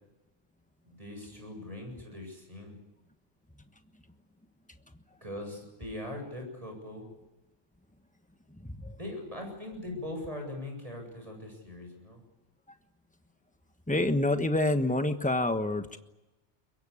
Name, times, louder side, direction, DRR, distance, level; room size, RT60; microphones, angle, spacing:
voice 1, 0.8-2.8 5.2-7.1 9.0-12.2, left 1 dB, 30° right, 3 dB, 7.8 m, -41 dB
voice 2, 8.5-9.0 13.9-16.0, left 2 dB, 5° left, 8 dB, 1.2 m, -28 dB
23.5 x 22.0 x 8.5 m, 1.0 s
omnidirectional pair, 1.2 m